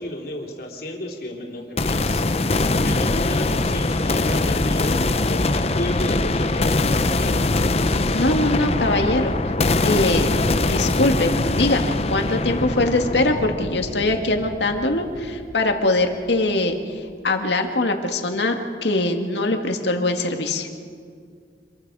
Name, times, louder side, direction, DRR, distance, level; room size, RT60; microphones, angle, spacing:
voice 1, 0.0-2.2 2.7-7.6, left 1 dB, 55° left, 0 dB, 3.4 m, -32 dB
sound 1, 1.8-15.7, left 2 dB, 35° left, 0.7 m, -22 dB
voice 2, 8.1-9.3 9.8-10.3 10.6-18.6 18.8-20.7, left 2 dB, 80° left, 4 dB, 2.0 m, -22 dB
26.5 x 22.5 x 4.9 m, 2.2 s
head